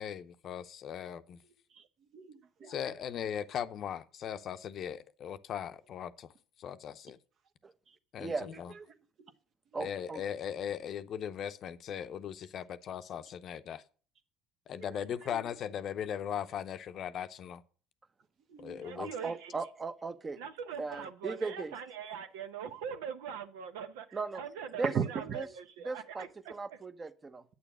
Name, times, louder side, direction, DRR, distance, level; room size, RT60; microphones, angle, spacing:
voice 1, 0.0-1.4 2.7-6.3 6.6-7.2 8.1-8.7 9.8-13.8 14.7-17.6 18.6-19.1, left 9 dB, 55° left, 0.6 m, -38 dB
voice 2, 1.4-3.1 7.9-9.3 9.7-9.9 14.7-15.4 18.5-19.4 24.8-25.4 26.2-26.3, right 6 dB, 55° right, 1.0 m, -41 dB
voice 3, 9.7-10.2 19.0-20.4 20.8-21.7 24.1-24.4 24.8-24.9 25.9-27.4, right 4 dB, 25° right, 0.8 m, -37 dB
voice 4, 18.7-19.5 20.4-24.8 25.1-25.4 25.8-26.8, right 7 dB, 85° right, 0.8 m, -42 dB
8.4 x 6.9 x 6.0 m
supercardioid pair, 75°, 0 cm